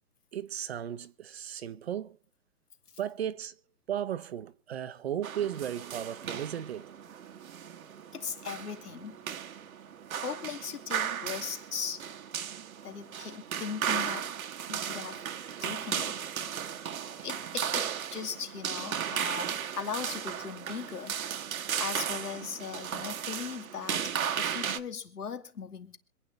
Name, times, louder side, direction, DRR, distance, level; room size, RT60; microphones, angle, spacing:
voice 1, 0.3-2.2 3.0-3.6 3.9-7.2, right 10 dB, 45° right, 1.0 m, -35 dB
sound 1, 5.2-24.8, right 8 dB, 65° right, 1.4 m, -35 dB
voice 2, 8.1-9.2 10.1-12.0 12.8-14.3 14.7-15.2 15.6-16.2 17.2-21.2 21.8-26.0, left 6 dB, 80° left, 2.6 m, -39 dB
26.0 x 9.5 x 3.3 m
hypercardioid pair, 155°, 46 cm